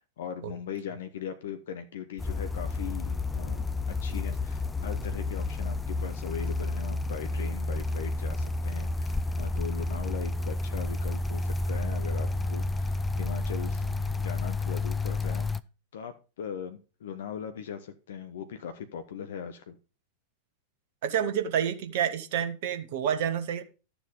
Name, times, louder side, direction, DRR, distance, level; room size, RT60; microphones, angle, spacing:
voice 1, 0.2-13.8 14.2-15.5 15.9-19.8, left 7 dB, 60° left, 1.1 m, -39 dB
sound 1, 2.2-15.6, left 2 dB, 10° left, 0.5 m, -31 dB
voice 2, 21.0-23.6, right 9 dB, 50° right, 1.5 m, -29 dB
12.5 x 7.1 x 5.4 m
figure-of-eight pair, 90°, 0 cm